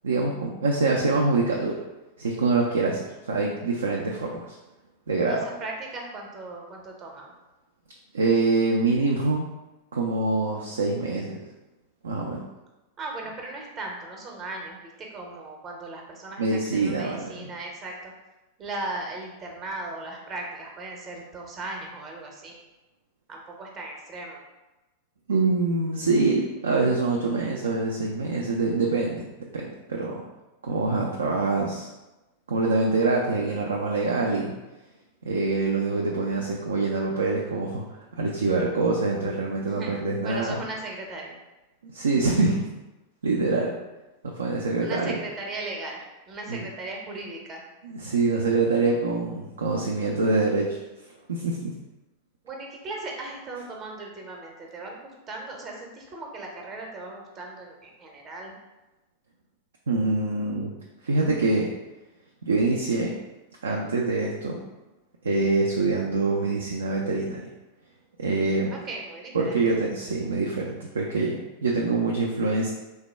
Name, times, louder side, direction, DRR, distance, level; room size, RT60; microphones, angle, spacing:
voice 1, 0.0-1.8 2.2-4.6 5.1-5.5 8.1-9.5 9.9-11.4 12.0-12.4 16.4-17.2 17.5-17.6 25.3-30.2 30.6-31.9 32.5-34.5 35.2-37.8 38.2-40.6 41.8-42.7 43.2-43.7 44.2-45.2 46.5-46.7 47.8-50.8 51.3-51.7 59.9-60.7 61.0-61.7 62.4-63.1 63.6-64.6 65.2-67.5 68.2-68.7 69.3-72.7, right 3 dB, 70° right, -1 dB, 0.3 m, -25 dB
voice 2, 5.3-7.3 13.0-18.1 18.6-22.6 23.3-24.4 39.6-39.9 40.2-41.3 44.8-46.0 46.3-47.6 52.4-58.6 68.7-69.6, right 2 dB, 30° right, 0 dB, 0.7 m, -37 dB
3.4 x 2.1 x 3.3 m, 1.0 s
figure-of-eight pair, 90°, 0 cm